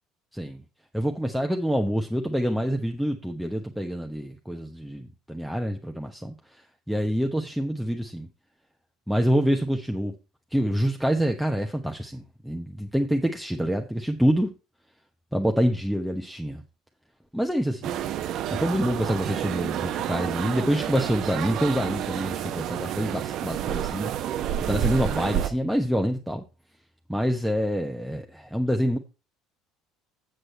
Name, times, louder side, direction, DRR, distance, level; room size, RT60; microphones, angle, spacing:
voice 1, 0.9-6.6 6.9-8.3 9.1-10.1 10.5-14.5 15.3-16.6 17.3-17.9 18.5-24.1 24.7-26.4 27.1-29.0, equal, ahead, 1.1 m, -26 dB
sound 1, 17.8-25.5, right 11 dB, 50° right, 0.8 m, -29 dB
8.1 x 7.8 x 4.4 m
figure-of-eight pair, 60°, 0 cm